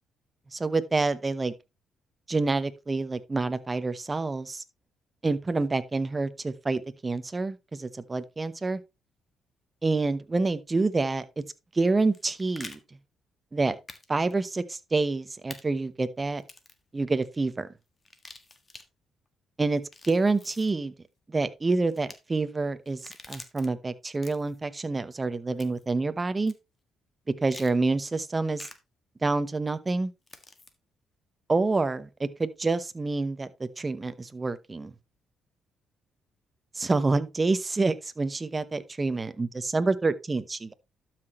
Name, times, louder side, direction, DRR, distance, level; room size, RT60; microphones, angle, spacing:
voice 1, 0.5-1.5 2.3-4.6 5.2-8.8 9.8-11.4 11.7-12.8 13.5-13.8 14.1-16.4 16.9-17.7 19.6-19.8 20.1-20.9 21.3-26.5 27.4-28.7 29.2-30.1 31.5-34.9 36.7-40.7, right 3 dB, 25° right, 0.9 m, -27 dB
sound 1, 12.0-12.8 13.9-14.0 14.3-14.4 15.5-15.6 16.4-16.8 18.0-18.8 19.8-20.7 21.9-22.2 22.9-23.7 24.1-24.6 25.6-25.9 26.5-26.6 27.5-27.7 28.6-28.7 30.3-30.7, left 3 dB, 30° left, 1.5 m, -46 dB
12.0 x 6.0 x 3.1 m
cardioid pair, 90°, 0 cm